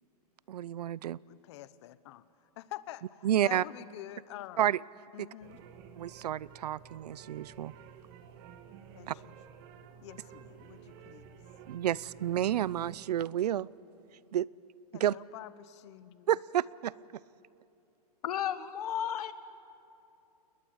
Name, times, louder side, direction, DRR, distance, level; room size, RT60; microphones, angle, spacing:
voice 1, 0.5-1.2 3.2-3.6 4.6-4.8 5.2-5.3 6.0-7.7 9.1-9.2 11.7-13.7 14.3-14.5 14.9-15.2 16.3-16.9, right 11 dB, 85° right, 0.6 m, -30 dB
voice 2, 1.3-2.3 2.6-4.6 5.1-5.6 8.9-9.3 10.0-11.4 14.9-16.3, left 14 dB, 45° left, 1.0 m, -47 dB
sound 1, 5.4-13.0, right 7 dB, 35° right, 1.7 m, -52 dB
voice 3, 18.2-19.3, left 10 dB, 70° left, 1.7 m, -33 dB
29.0 x 21.0 x 8.8 m
hypercardioid pair, 160°, 20 cm